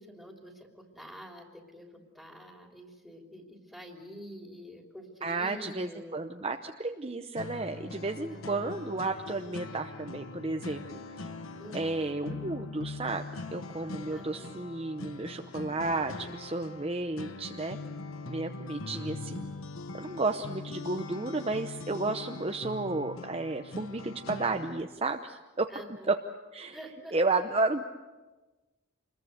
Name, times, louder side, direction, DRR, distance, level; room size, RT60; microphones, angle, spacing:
voice 1, 0.0-6.2 8.3-8.7 11.6-11.9 14.1-14.6 25.7-26.1 26.7-27.1, equal, ahead, 1 dB, 3.2 m, -47 dB
voice 2, 5.2-11.3 11.7-13.2 13.5-17.8 18.3-19.5 19.9-25.7 26.1-26.2 26.5-26.8 27.1-27.8, right 3 dB, 30° right, 5 dB, 0.8 m, -32 dB
sound 1, 7.4-24.8, left 3 dB, 85° left, 1.2 m, -42 dB
27.0 x 21.5 x 8.1 m, 1.2 s
head